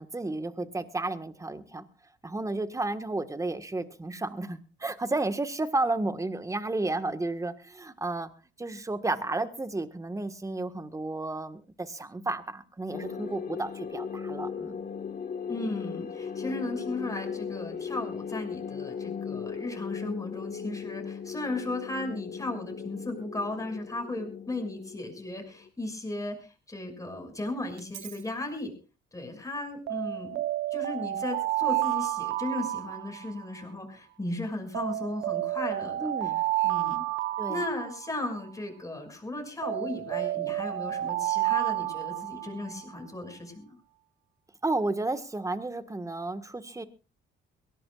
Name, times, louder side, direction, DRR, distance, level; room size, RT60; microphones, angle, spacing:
voice 1, 0.0-1.9 2.2-8.3 8.6-14.8 36.0-36.4 37.4-37.6 44.6-46.8, right 2 dB, 15° right, 10 dB, 1.5 m, -32 dB
sound 1, 12.9-25.7, left 6 dB, 45° left, 1.5 m, -37 dB
voice 2, 15.5-28.7 29.1-30.4 30.7-36.3 36.6-37.0 37.5-43.8, left 2 dB, 15° left, 4 dB, 6.0 m, -36 dB
Alarm, 27.8-28.2 29.9-33.6 34.7-38.5 39.6-42.8, right 15 dB, 85° right, 1.0 m, -30 dB
22.5 x 17.5 x 2.4 m, 0.32 s
cardioid pair, 90°, 20 cm